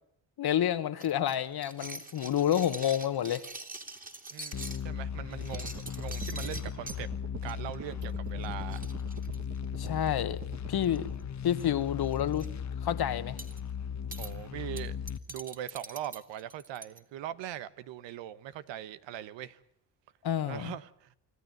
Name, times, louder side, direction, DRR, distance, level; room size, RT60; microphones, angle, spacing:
voice 1, 0.4-3.4 9.8-10.4 10.7-11.1 11.4-12.5 12.8-13.4 20.2-20.7, left 10 dB, 60° left, 1.5 m, -29 dB
sound 1, 1.0-4.8 5.3-7.0 7.5-7.7 8.0-8.1 8.4-8.5 8.7-10.1 10.8-11.2 11.5-11.7 12.0-12.5 13.4-13.6 14.1-14.3 14.8-17.0, right 2 dB, 20° right, 2.9 m, -44 dB
voice 2, 4.3-7.1 7.4-8.8 14.2-15.0 15.3-19.6 20.4-21.1, right 12 dB, 90° right, 1.2 m, -41 dB
sound 2, 4.5-15.2, left 8 dB, 40° left, 1.2 m, -37 dB
sound 3, 5.4-11.1, right 6 dB, 35° right, 1.3 m, -46 dB
26.0 x 14.0 x 9.2 m
cardioid pair, 85°, 43 cm